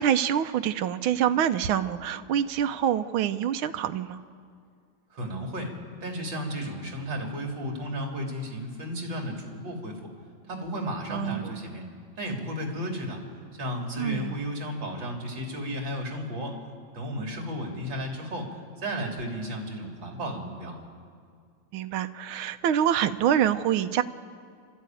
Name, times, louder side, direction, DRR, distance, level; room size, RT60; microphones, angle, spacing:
voice 1, 0.0-4.2 11.1-11.6 14.0-14.3 21.7-24.0, right 9 dB, 90° right, 10 dB, 1.6 m, -26 dB
voice 2, 5.1-5.7 6.0-10.0 10.5-11.9 12.2-13.2 13.5-16.6 16.9-20.8, equal, 65° right, 1 dB, 3.8 m, -33 dB
28.5 x 13.0 x 9.1 m, 2.2 s
omnidirectional pair, 2.2 m